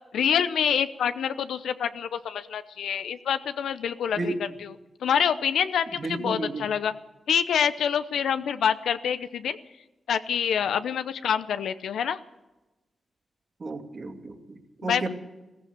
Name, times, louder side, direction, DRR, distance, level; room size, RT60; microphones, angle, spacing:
voice 1, 0.1-4.3 4.6-6.9 7.3-9.6 10.1-12.2 14.8-15.1, left 8 dB, 85° left, 12 dB, 0.7 m, -26 dB
voice 2, 6.0-6.6 13.6-15.1, right 3 dB, 50° right, 4 dB, 2.7 m, -33 dB
15.0 x 14.5 x 6.7 m, 1.1 s
cardioid pair, 60°, 0 cm